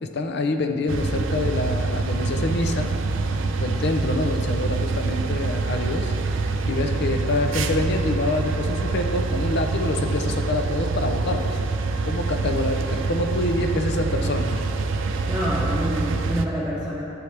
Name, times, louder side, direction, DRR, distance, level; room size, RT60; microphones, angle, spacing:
voice 1, 0.0-3.0 3.6-6.1 6.7-11.6 12.0-14.7, left 2 dB, 60° left, 5 dB, 0.6 m, -26 dB
sound 1, 0.9-16.5, right 3 dB, 65° right, 0.5 m, -25 dB
voice 2, 15.3-17.0, equal, 5° right, -10 dB, 0.9 m, -27 dB
11.0 x 7.1 x 3.4 m, 2.7 s
head